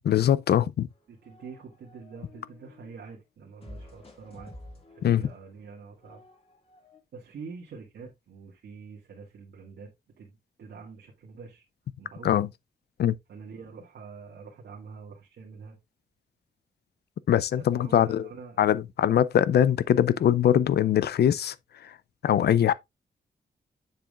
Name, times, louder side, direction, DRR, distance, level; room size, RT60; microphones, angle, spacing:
voice 1, 0.0-0.9 5.0-5.3 12.2-12.5 13.0-13.2 17.3-18.3 18.6-21.5 22.2-22.7, left 10 dB, 70° left, 0.5 m, -22 dB
sound 1, 0.9-3.0 3.6-7.0, left 1 dB, 35° left, 1.9 m, -50 dB
voice 2, 1.1-4.5 4.9-6.2 7.1-9.9 10.2-11.6 12.0-12.4 13.3-15.8 17.5-18.6, right 5 dB, 90° right, 1.9 m, -45 dB
7.5 x 7.1 x 2.4 m
wide cardioid pair, 140°, 17 cm